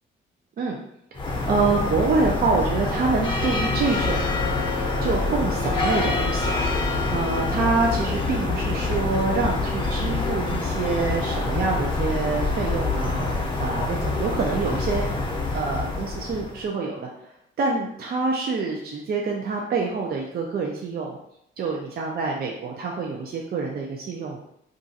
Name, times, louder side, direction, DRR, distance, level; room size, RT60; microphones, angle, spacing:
sound 1, 1.1-16.6, left 3 dB, 25° left, 0.7 m, -26 dB
voice 1, 1.1-4.3 5.0-6.6 7.1-15.1 15.5-17.1 17.6-21.2 21.6-24.4, right 4 dB, 50° right, -1 dB, 0.5 m, -26 dB
2.6 x 2.3 x 4.0 m, 0.75 s
cardioid pair, 90°, 20 cm